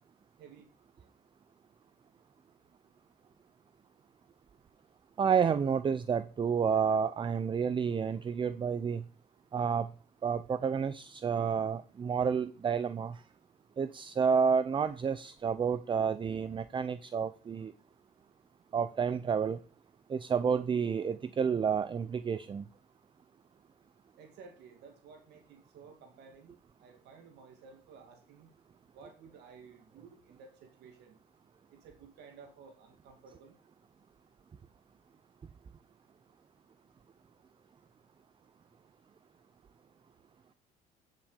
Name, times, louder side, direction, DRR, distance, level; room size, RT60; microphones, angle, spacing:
voice 1, 0.4-0.7 1.0-1.1 24.2-28.5 28.9-31.2 31.7-33.6, right 5 dB, 80° right, 4 dB, 2.6 m, -54 dB
voice 2, 5.2-9.0 9.5-9.9 10.2-13.2 13.8-17.7 18.7-19.6 20.1-22.7, right 6 dB, 30° right, 14 dB, 0.6 m, -30 dB
9.7 x 7.4 x 5.2 m, 0.40 s
cardioid pair, 110°, 17 cm